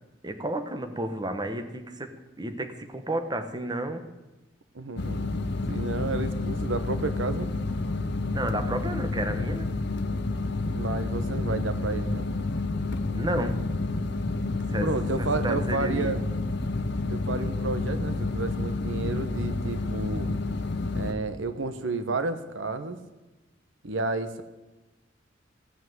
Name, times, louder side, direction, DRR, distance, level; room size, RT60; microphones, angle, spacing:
voice 1, 0.2-2.1 2.4-4.0 8.3-9.7 13.1-13.6 14.7-14.9 15.2-16.1, right 1 dB, 20° right, 7 dB, 1.2 m, -31 dB
voice 2, 4.7-5.2 5.7-7.5 10.7-12.3 14.8-16.2 17.1-20.3 20.9-23.0 23.8-24.4, right 3 dB, 85° right, 10 dB, 1.1 m, -31 dB
sound 1, 5.0-21.1, left 2 dB, 65° left, 0.9 m, -29 dB
16.0 x 8.3 x 7.8 m, 1.1 s
head